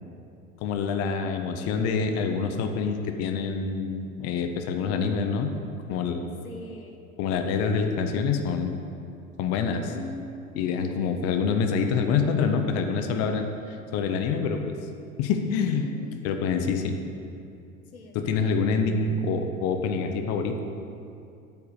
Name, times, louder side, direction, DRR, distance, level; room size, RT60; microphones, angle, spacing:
voice 1, 0.6-5.5 5.9-6.3 7.2-8.8 9.4-9.9 10.6-14.6 15.2-15.9 16.2-17.0 18.1-20.6, left 5 dB, 35° left, 5 dB, 0.7 m, -26 dB
voice 2, 4.8-5.3 6.4-7.0 9.9-10.3 11.0-11.5 15.7-16.3 17.9-18.6, left 3 dB, 85° left, 3 dB, 0.9 m, -42 dB
8.4 x 4.6 x 6.7 m, 2.5 s
figure-of-eight pair, 80°, 42 cm